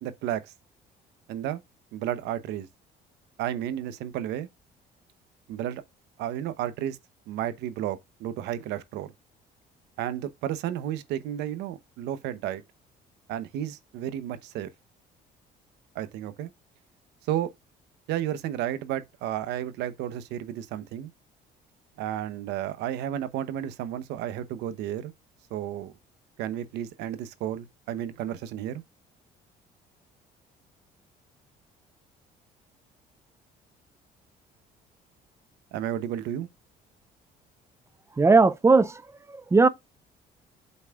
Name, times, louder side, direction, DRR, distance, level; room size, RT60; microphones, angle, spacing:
voice 1, 0.0-0.5 1.3-1.6 1.9-2.7 3.4-4.5 5.5-5.8 6.2-7.0 7.3-9.1 10.0-12.6 13.3-14.7 15.9-16.5 17.3-17.5 18.1-21.1 22.0-25.1 25.5-25.9 26.4-28.8 35.7-36.5, right 11 dB, 90° right, 0.9 m, -32 dB
voice 2, 38.2-39.0 39.3-39.7, right 3 dB, 15° right, 0.5 m, -18 dB
8.1 x 5.4 x 2.4 m
cardioid pair, 110°, 17 cm